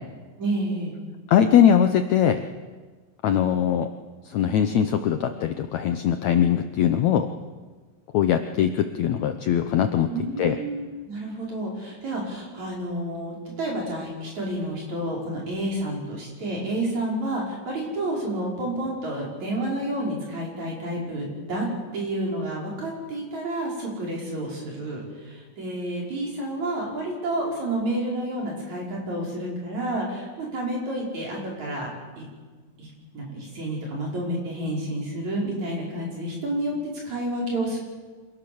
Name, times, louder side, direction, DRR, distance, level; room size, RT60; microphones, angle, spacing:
voice 1, 0.4-0.9 10.1-21.7 21.9-31.9 32.2-32.3 32.8-32.9 33.1-36.8 37.0-37.8, right 1 dB, 50° right, -2 dB, 6.7 m, -30 dB
voice 2, 1.3-2.4 3.2-3.9 4.2-7.3 8.1-10.1 10.4-10.6, left 9 dB, 70° left, 8 dB, 1.7 m, -21 dB
26.5 x 18.0 x 7.1 m, 1.4 s
omnidirectional pair, 4.1 m